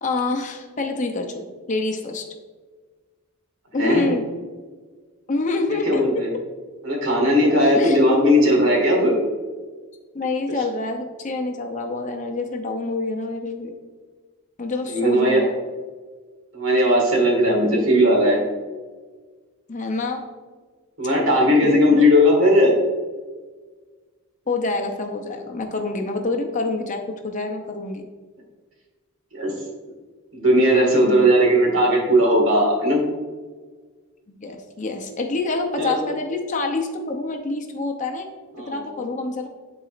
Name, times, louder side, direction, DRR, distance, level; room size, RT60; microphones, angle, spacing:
voice 1, 0.0-2.2 3.7-4.3 5.3-6.0 7.7-8.0 10.1-13.7 14.6-15.5 19.7-20.2 21.6-22.0 24.5-28.0 34.3-38.3 38.7-39.5, left 3 dB, 35° left, 4 dB, 0.6 m, -27 dB
voice 2, 5.7-6.3 6.8-9.1 14.9-15.5 16.5-18.4 21.0-22.8 29.3-29.6 30.3-33.0 35.8-36.0 38.6-38.7, equal, 65° right, -1 dB, 1.9 m, -17 dB
10.5 x 4.0 x 2.5 m, 1.4 s
head